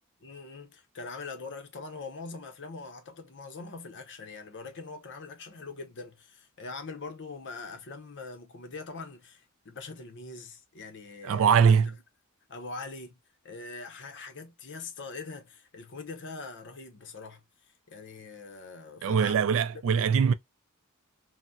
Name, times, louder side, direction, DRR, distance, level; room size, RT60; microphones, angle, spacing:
voice 1, 0.2-11.7 12.5-13.2 13.4-17.4 17.9-19.5 19.9-20.1, left 3 dB, 55° left, 0.8 m, -42 dB
voice 2, 11.2-12.0 19.0-20.3, right 6 dB, 65° right, 0.3 m, -22 dB
4.0 x 2.1 x 2.2 m
head